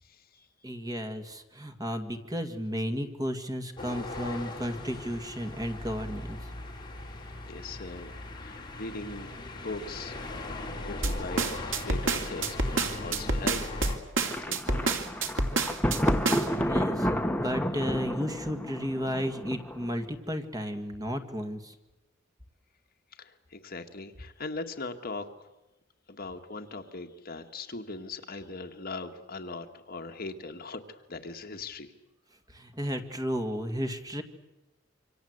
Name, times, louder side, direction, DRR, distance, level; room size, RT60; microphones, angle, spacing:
voice 1, 0.0-0.7 7.5-9.3 9.6-10.3 10.8-11.5 11.8-13.7 14.4-15.0 23.1-25.5 26.1-31.9, left 3 dB, 50° left, 5 dB, 2.0 m, -40 dB
voice 2, 0.6-6.4 15.8-16.1 16.5-21.7 32.5-34.2, equal, 20° right, 6 dB, 2.2 m, -33 dB
sound 1, 3.8-14.0, left 2 dB, 25° left, 4.1 m, -39 dB
sound 2, 11.0-16.6, right 3 dB, 75° right, 2.7 m, -28 dB
Thunder, 14.2-20.0, equal, 10° left, 1.2 m, -31 dB
27.0 x 25.5 x 8.1 m, 0.96 s
head